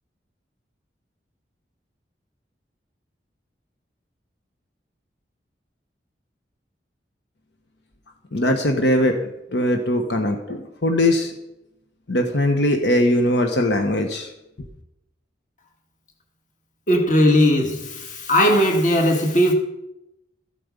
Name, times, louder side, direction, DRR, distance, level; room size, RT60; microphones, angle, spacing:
voice 1, 8.3-9.2 9.5-11.3 12.1-14.3, left 1 dB, 75° left, 1.2 m, -20 dB
voice 2, 16.9-19.5, equal, 45° left, 1.9 m, -18 dB
13.5 x 8.6 x 5.3 m
head